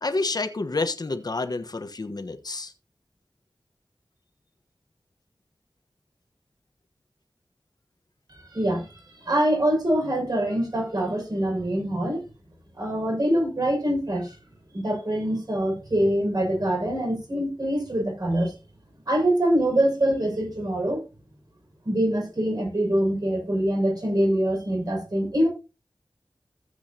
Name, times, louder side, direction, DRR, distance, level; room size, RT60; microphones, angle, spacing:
voice 1, 0.0-2.7, left 3 dB, 55° left, 1.2 m, -29 dB
voice 2, 8.5-12.2 12.7-14.4 14.7-18.6 19.1-21.0 21.8-25.5, right 1 dB, 55° right, 6.2 m, -24 dB
15.0 x 8.1 x 2.9 m
wide cardioid pair, 75°, 8 cm